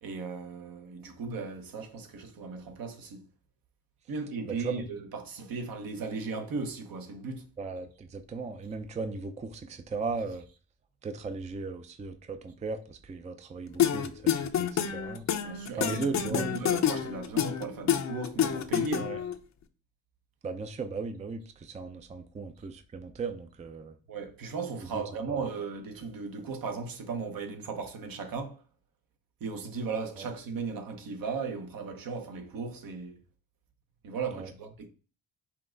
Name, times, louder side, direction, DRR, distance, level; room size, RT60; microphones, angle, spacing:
voice 1, 0.0-3.3 4.1-7.4 15.4-19.1 24.1-28.6 29.4-33.2 34.0-34.9, right 4 dB, 65° right, 1.1 m, -36 dB
voice 2, 4.5-4.8 7.6-10.5 11.0-15.3 15.8-16.5 19.0-19.2 20.4-24.0 25.3-25.4 30.2-30.3 34.3-34.5, right 4 dB, 20° right, 0.4 m, -37 dB
sound 1, 13.8-19.3, left 9 dB, 50° left, 0.6 m, -28 dB
5.8 x 2.4 x 3.8 m
cardioid pair, 95°, 37 cm